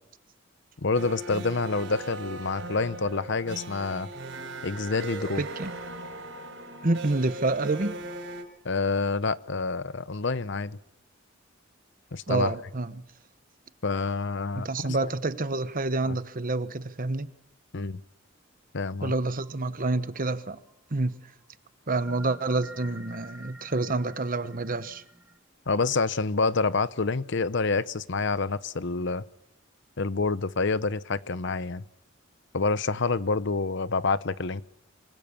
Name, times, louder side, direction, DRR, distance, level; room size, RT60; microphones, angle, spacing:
voice 1, 0.8-4.1 4.6-5.4 8.6-10.8 12.1-12.5 13.8-15.1 16.0-16.2 17.7-18.0 18.7-19.1 25.7-29.2 30.0-31.9 32.5-34.6, left 4 dB, 60° left, 0.8 m, -27 dB
sound 1, 0.9-8.4, right 2 dB, 70° right, 5.4 m, -39 dB
voice 2, 5.4-5.7 6.8-7.9 12.3-13.0 14.5-17.3 19.0-20.6 20.9-21.2 21.9-25.0, right 2 dB, 45° right, 1.1 m, -28 dB
sound 2, 19.4-20.7 21.9-25.4, right 1 dB, 5° right, 1.6 m, -48 dB
25.0 x 25.0 x 7.1 m
head